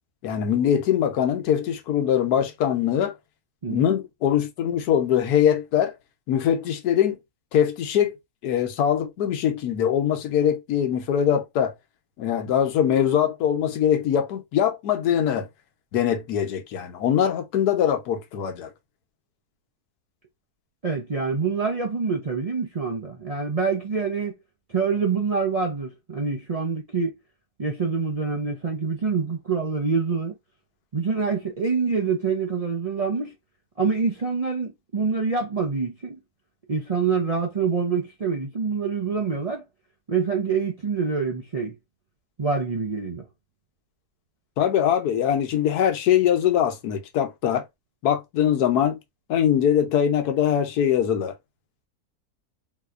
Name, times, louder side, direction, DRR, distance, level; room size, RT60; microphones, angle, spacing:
voice 1, 0.2-3.1 3.7-5.9 6.3-7.2 7.5-8.2 8.4-11.7 12.2-15.5 15.9-18.7 44.6-47.6 48.0-49.0 49.3-51.3, left 9 dB, 80° left, 1.2 m, -22 dB
voice 2, 3.6-4.0 20.8-24.3 24.7-27.1 27.6-30.3 30.9-33.3 33.8-36.2 36.7-39.6 40.1-41.7 42.4-43.2, right 5 dB, 70° right, 0.3 m, -26 dB
3.8 x 2.8 x 2.4 m
omnidirectional pair, 1.6 m